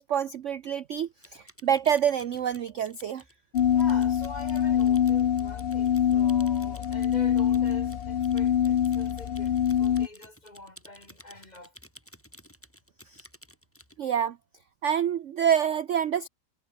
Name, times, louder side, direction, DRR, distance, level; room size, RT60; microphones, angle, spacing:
voice 1, 0.0-3.2 13.1-13.2 14.0-14.4 14.8-16.3, right 9 dB, 55° right, 0.8 m, -27 dB
Typing, 1.0-14.0, equal, 5° left, 8.0 m, -53 dB
sound 1, 3.5-10.1, left 9 dB, 80° left, 0.5 m, -24 dB
voice 2, 3.7-11.7, left 2 dB, 20° left, 3.1 m, -46 dB
omnidirectional pair, 2.0 m